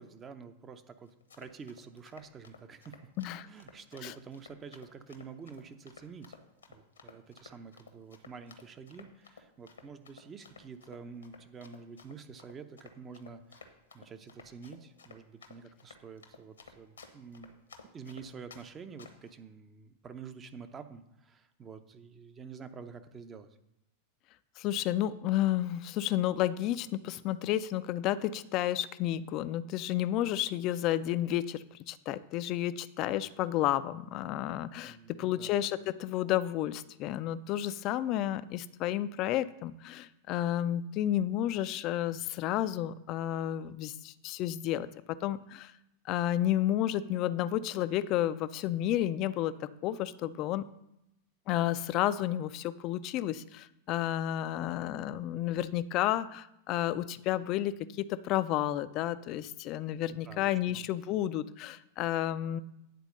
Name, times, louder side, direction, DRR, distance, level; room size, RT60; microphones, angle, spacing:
voice 1, 0.0-3.0 3.4-6.4 6.7-17.6 17.9-23.5 34.9-35.5 60.1-60.9, right 5 dB, 20° right, 9 dB, 0.7 m, -48 dB
Run, 1.1-18.7 19.0-19.3, left 5 dB, 70° left, 1.1 m, -54 dB
voice 2, 24.6-45.7 46.1-50.7 51.5-62.6, left 12 dB, 40° left, 14 dB, 0.4 m, -31 dB
9.2 x 4.4 x 6.6 m, 0.84 s
figure-of-eight pair, 90°, 0 cm